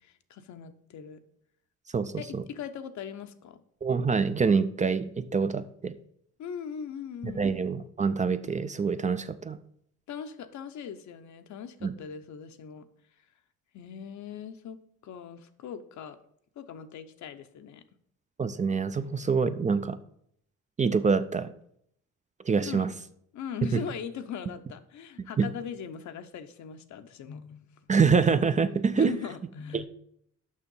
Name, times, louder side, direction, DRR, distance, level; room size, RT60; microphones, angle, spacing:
voice 1, 0.0-1.2 2.2-3.6 6.4-7.5 10.1-12.9 13.7-16.2 16.6-17.8 22.6-22.9 23.3-27.7 29.0-29.9, left 7 dB, 70° left, 9 dB, 0.8 m, -40 dB
voice 2, 1.9-2.4 3.8-5.9 7.2-9.6 11.8-11.9 18.4-20.0 20.8-21.5 22.5-22.9 23.7-23.8 25.4-25.5 27.9-29.1 29.7-29.9, right 5 dB, 25° right, 11 dB, 0.4 m, -25 dB
6.5 x 5.7 x 5.4 m, 0.69 s
cardioid pair, 90°, 30 cm